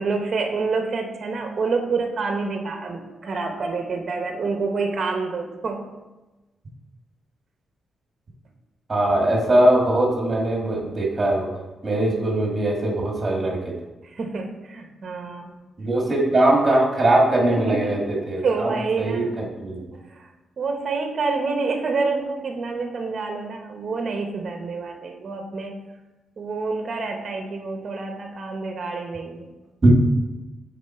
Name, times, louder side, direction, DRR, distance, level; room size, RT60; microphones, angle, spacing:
voice 1, 0.0-5.8 14.0-15.6 17.5-18.1 18.4-19.3 19.9-20.3 20.6-25.8 26.4-29.5, right 4 dB, 45° right, 4 dB, 0.9 m, -27 dB
voice 2, 8.9-11.5 11.8-13.7 15.8-18.7 19.0-19.8 29.8-30.0, right 1 dB, 25° right, -1 dB, 1.8 m, -20 dB
7.2 x 4.2 x 4.3 m, 1.1 s
cardioid pair, 130°, 0 cm